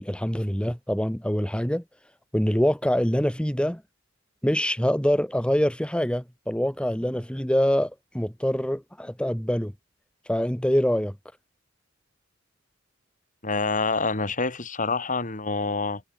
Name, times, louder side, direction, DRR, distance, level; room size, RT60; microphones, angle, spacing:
voice 1, 0.0-1.8 2.3-3.8 4.4-9.7 10.3-11.2, equal, 5° left, 1.9 m, -25 dB
voice 2, 13.4-16.0, left 3 dB, 40° left, 4.0 m, -27 dB
head